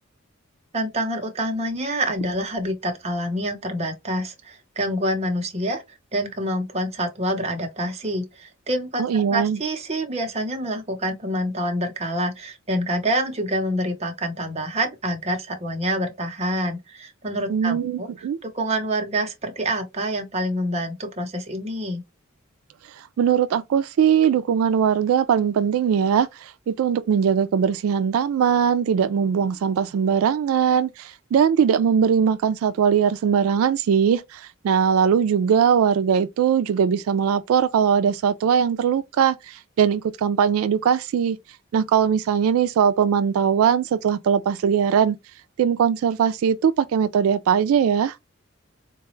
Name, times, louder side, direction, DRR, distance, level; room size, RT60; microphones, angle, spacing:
voice 1, 0.7-5.8 6.1-22.0, right 1 dB, 30° right, 0.8 m, -27 dB
voice 2, 9.0-9.6 17.5-18.4 23.0-41.4 41.7-45.2 45.6-48.2, right 7 dB, 90° right, 0.3 m, -20 dB
4.0 x 2.2 x 3.0 m
head